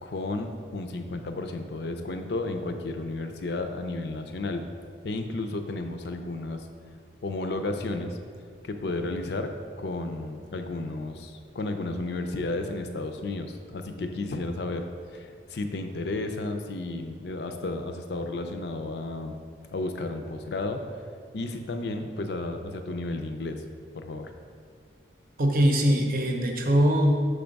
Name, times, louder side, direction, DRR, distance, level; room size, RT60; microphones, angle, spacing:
voice 1, 0.0-4.7 5.0-6.7 7.2-8.2 8.6-19.4 19.7-20.8 21.3-23.6 23.9-24.3, left 2 dB, 60° left, 7 dB, 0.5 m, -33 dB
voice 2, 25.4-27.2, equal, 45° right, 2 dB, 0.7 m, -22 dB
6.0 x 3.4 x 5.2 m, 2.1 s
head